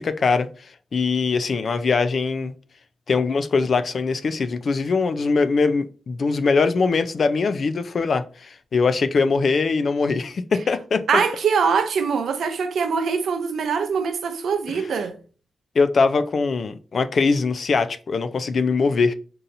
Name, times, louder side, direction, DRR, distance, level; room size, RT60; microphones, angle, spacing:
voice 1, 0.0-2.5 3.1-11.0 14.7-14.9 15.8-19.1, left 4 dB, 45° left, 0.3 m, -22 dB
voice 2, 11.1-15.1, right 6 dB, 80° right, 0.5 m, -23 dB
5.3 x 2.8 x 2.6 m
wide cardioid pair, 180°, 0 cm